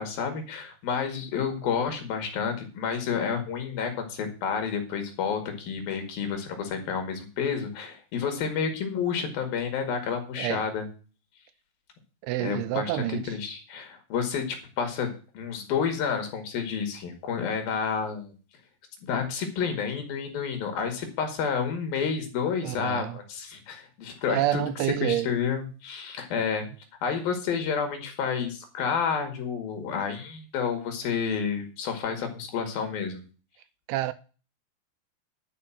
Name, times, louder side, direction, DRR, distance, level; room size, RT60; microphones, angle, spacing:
voice 1, 0.0-10.9 12.4-18.3 19.0-24.6 25.0-26.7 27.0-33.2, left 6 dB, 65° left, 3.7 m, -30 dB
voice 2, 12.2-13.4 22.6-23.2 24.3-25.3 33.9-34.1, right 15 dB, 80° right, 2.5 m, -28 dB
11.0 x 5.5 x 7.3 m
omnidirectional pair, 4.8 m